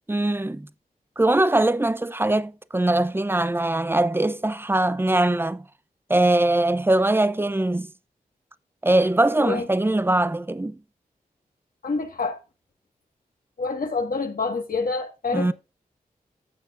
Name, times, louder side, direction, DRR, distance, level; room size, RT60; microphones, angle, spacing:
voice 1, 0.1-0.7 1.2-5.6 6.1-7.9 8.8-10.8 15.3-15.5, right 1 dB, 15° right, 0.6 m, -21 dB
voice 2, 9.2-9.7 11.8-12.4 13.6-15.5, left 4 dB, 65° left, 1.8 m, -27 dB
14.5 x 6.8 x 2.6 m
cardioid pair, 45°, 16 cm